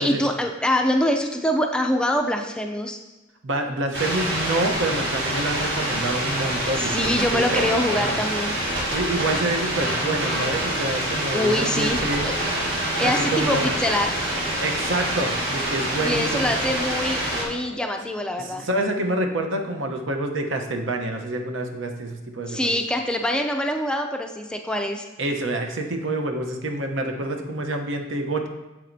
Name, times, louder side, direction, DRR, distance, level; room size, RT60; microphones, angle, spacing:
voice 1, 0.0-3.0 6.8-8.5 11.3-12.0 12.2-12.3 13.0-14.1 16.0-18.7 22.5-25.1, left 1 dB, 5° left, 4 dB, 0.3 m, -24 dB
voice 2, 3.4-8.2 8.9-12.3 13.0-13.8 14.6-16.6 18.4-22.8 25.2-28.5, right 1 dB, 80° right, 4 dB, 0.8 m, -27 dB
sound 1, 3.9-17.4, right 1 dB, 60° right, 1.7 m, -26 dB
7.5 x 7.3 x 2.7 m, 1.1 s
head